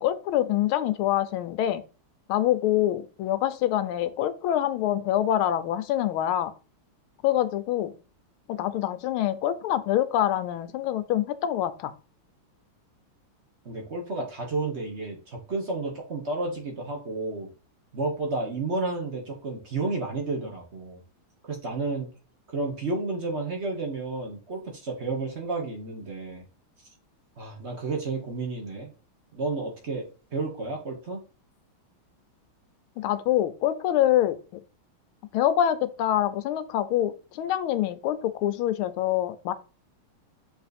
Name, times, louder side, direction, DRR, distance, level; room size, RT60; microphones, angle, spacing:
voice 1, 0.0-1.8 2.3-6.5 7.2-7.9 8.5-11.9 33.0-34.4 35.3-39.5, left 12 dB, 80° left, 12 dB, 1.5 m, -25 dB
voice 2, 13.6-17.5 17.9-21.0 21.4-22.1 22.5-26.4 27.4-28.9 29.3-31.2, right 3 dB, 35° right, 0 dB, 1.4 m, -31 dB
6.8 x 3.4 x 4.1 m, 0.35 s
omnidirectional pair, 2.4 m